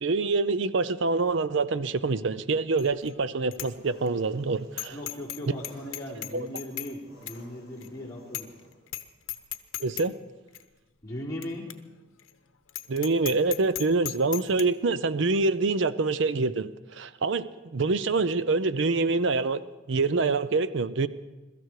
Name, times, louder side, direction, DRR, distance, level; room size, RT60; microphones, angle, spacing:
voice 1, 0.0-5.0 6.3-6.5 9.8-10.1 12.9-19.6 19.9-21.1, right 3 dB, 60° right, 15 dB, 0.6 m, -26 dB
Bicycle bell, 2.8-3.1 3.5-3.7 4.1-4.2 4.8-5.4 5.6-6.9 7.3-7.4 7.8-7.9 8.3-8.6 8.9-9.0 9.3-10.1 10.5-10.6 11.4-11.5 11.7-11.8 12.2-12.3 12.7-14.6, left 13 dB, 75° left, 0.9 m, -35 dB
Engine, 3.5-8.8, right 1 dB, 25° right, 5.6 m, -56 dB
voice 2, 4.9-8.5 11.0-11.7, left 1 dB, 15° left, -6 dB, 3.7 m, -38 dB
23.0 x 13.5 x 4.8 m, 1.1 s
head